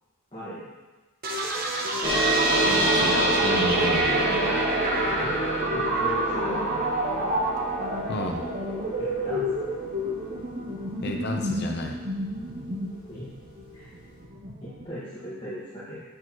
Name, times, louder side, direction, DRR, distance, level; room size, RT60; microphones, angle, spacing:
voice 1, 0.3-0.7 5.1-5.3 5.7-6.9 9.0-9.7 13.1-13.3 13.7-13.9 14.6-16.0, equal, 25° left, -11 dB, 1.6 m, -37 dB
sound 1, 1.2-14.8, right 1 dB, 45° right, 0.9 m, -29 dB
sound 2, 2.0-12.9, right 2 dB, 25° right, 1.6 m, -28 dB
voice 2, 2.6-4.2 8.1-8.4 11.0-11.9, left 2 dB, 55° left, 1 dB, 0.7 m, -31 dB
7.9 x 6.6 x 3.0 m, 1.2 s
head